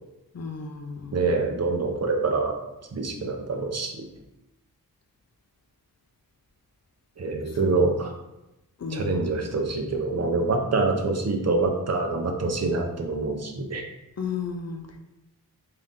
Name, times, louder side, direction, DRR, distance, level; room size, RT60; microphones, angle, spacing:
voice 1, 0.3-1.2 7.6-8.0 8.8-9.2 14.2-14.8, left 5 dB, 45° left, 5 dB, 0.5 m, -33 dB
voice 2, 1.1-2.5 2.9-4.1 7.2-8.1 8.9-13.8, right 3 dB, 45° right, 3 dB, 0.7 m, -25 dB
3.7 x 2.8 x 3.7 m, 0.96 s
wide cardioid pair, 95°, 37 cm